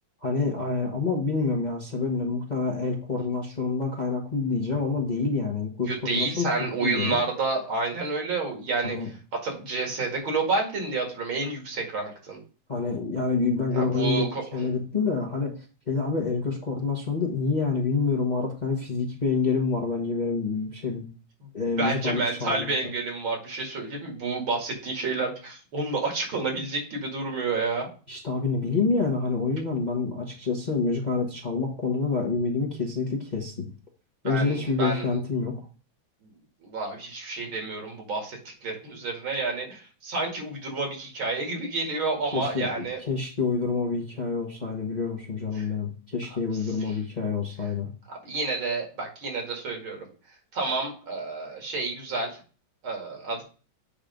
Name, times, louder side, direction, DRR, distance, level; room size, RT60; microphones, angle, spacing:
voice 1, 0.2-6.5 6.8-7.2 8.8-9.1 12.7-14.2 14.5-21.1 21.5-22.9 28.1-33.7 34.2-35.5 42.3-47.9, left 4 dB, 30° left, -2 dB, 1.0 m, -27 dB
voice 2, 5.9-9.0 9.4-12.4 13.7-14.6 21.8-27.9 34.2-35.2 36.6-43.0 45.6-45.7 48.1-50.1 50.5-52.4 52.8-53.4, right 3 dB, 75° right, 1 dB, 2.9 m, -29 dB
8.7 x 3.2 x 5.1 m, 0.37 s
omnidirectional pair, 2.2 m